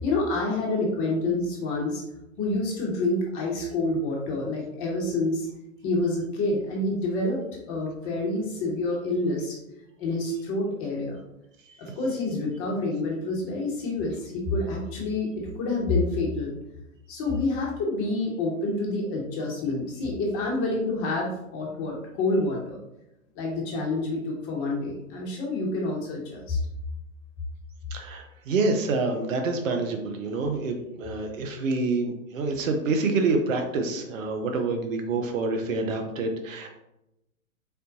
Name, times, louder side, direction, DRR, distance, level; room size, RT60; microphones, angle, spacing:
voice 1, 0.0-2.0 2.4-5.5 5.8-9.6 10.0-11.2 11.8-16.5 17.1-22.8 23.3-26.6, left 2 dB, 30° left, -2 dB, 1.3 m, -28 dB
voice 2, 27.9-36.7, right 3 dB, 60° right, 4 dB, 0.9 m, -27 dB
4.4 x 4.0 x 2.7 m, 0.87 s
hypercardioid pair, 120°, 43 cm